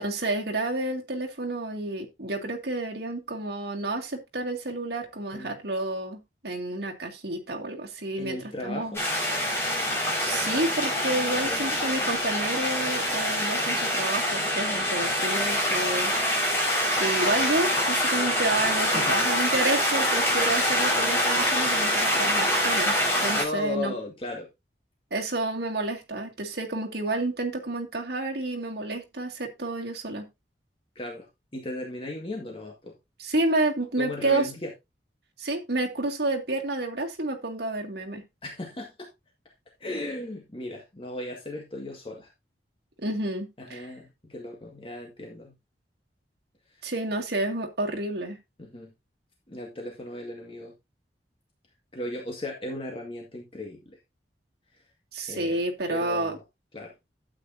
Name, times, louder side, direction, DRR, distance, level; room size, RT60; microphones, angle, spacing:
voice 1, 0.0-8.9 10.2-16.5 17.0-23.9 25.1-30.3 33.2-34.5 35.4-38.2 43.0-43.9 46.8-48.4 55.1-56.4, right 2 dB, 65° right, 1 dB, 2.3 m, -30 dB
voice 2, 8.2-9.0 11.3-11.6 18.9-19.2 23.3-24.5 31.0-31.3 31.5-32.9 34.0-34.7 38.4-39.1 39.8-42.3 43.6-45.6 48.6-48.9 49.5-50.7 51.9-54.0 55.3-55.6 55.9-56.4 56.7-56.9, left 1 dB, 30° left, 0 dB, 1.9 m, -36 dB
sound 1, 8.9-23.4, equal, 15° left, 5.1 m, -25 dB
12.0 x 8.5 x 2.7 m, 0.22 s
head